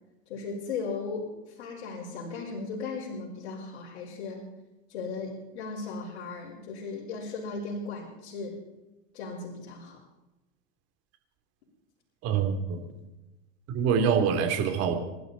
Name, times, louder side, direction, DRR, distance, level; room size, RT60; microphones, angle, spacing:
voice 1, 0.3-1.3 1.6-4.4 4.9-8.6 9.1-10.0, left 4 dB, 70° left, -5 dB, 4.8 m, -36 dB
voice 2, 12.2-12.5 13.7-15.0, right 7 dB, 45° right, 5 dB, 3.3 m, -24 dB
27.0 x 12.0 x 4.2 m, 1.0 s
supercardioid pair, 120°, 33 cm